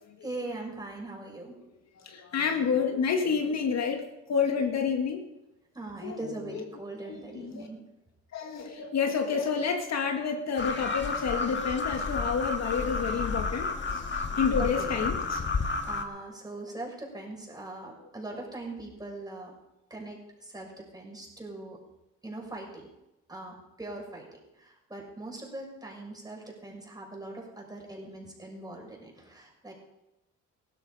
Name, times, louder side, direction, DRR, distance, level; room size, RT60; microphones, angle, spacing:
voice 1, 0.2-1.5 5.7-7.8 14.6-15.0 15.9-19.5 19.9-21.8 22.2-22.9 23.3-29.7, right 2 dB, 15° right, -1 dB, 6.3 m, -41 dB
voice 2, 2.0-5.2 6.0-6.7 7.0-7.7 8.3-14.1 14.4-15.4, left 6 dB, 60° left, 4 dB, 2.0 m, -29 dB
sound 1, 10.6-16.0, left 4 dB, 40° left, 1.7 m, -31 dB
16.5 x 13.0 x 5.0 m, 0.91 s
cardioid pair, 90°, 30 cm